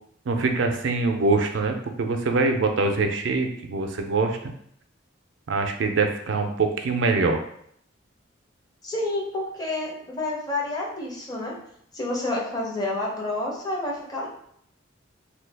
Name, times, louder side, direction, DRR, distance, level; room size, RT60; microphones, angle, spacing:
voice 1, 0.3-4.5 5.5-7.4, right 3 dB, 70° right, 4 dB, 0.4 m, -24 dB
voice 2, 8.8-11.5 11.9-14.3, left 2 dB, 20° left, -3 dB, 0.7 m, -29 dB
3.1 x 2.3 x 3.3 m, 0.68 s
head